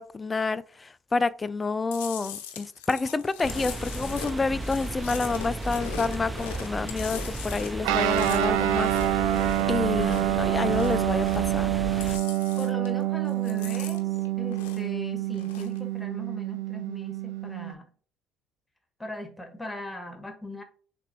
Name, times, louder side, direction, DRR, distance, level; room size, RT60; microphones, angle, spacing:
voice 1, 0.0-8.9 9.7-11.7, left 4 dB, 25° left, 0.4 m, -29 dB
Chewing mastication, 1.9-10.4 10.6-11.6 11.8-13.0 13.3-15.0 15.3-15.8, left 9 dB, 80° left, 0.6 m, -41 dB
sound 1, 3.4-12.2, right 1 dB, 15° right, 0.7 m, -35 dB
Guitar, 7.8-17.7, right 13 dB, 70° right, 0.4 m, -27 dB
voice 2, 9.9-10.8 12.6-14.1 14.4-17.9 19.0-20.6, left 1 dB, 10° left, 1.3 m, -39 dB
6.6 x 2.5 x 3.0 m
hypercardioid pair, 55°, 0 cm